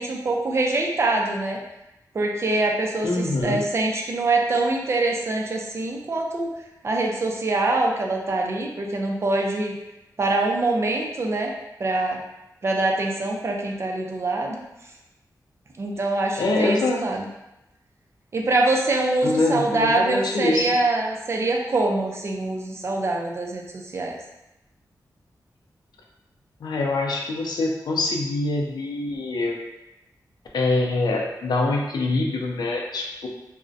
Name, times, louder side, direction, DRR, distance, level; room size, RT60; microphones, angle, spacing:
voice 1, 0.0-1.6 2.1-6.5 6.8-9.8 10.2-11.5 11.8-12.2 12.6-14.6 15.8-17.3 18.3-24.1, right 2 dB, 40° right, 0 dB, 0.3 m, -24 dB
voice 2, 3.0-3.6 16.4-17.0 19.2-20.7 26.6-29.5 30.5-33.3, left 2 dB, 85° left, 0 dB, 0.4 m, -24 dB
2.4 x 2.0 x 2.5 m, 0.92 s
wide cardioid pair, 160°, 7 cm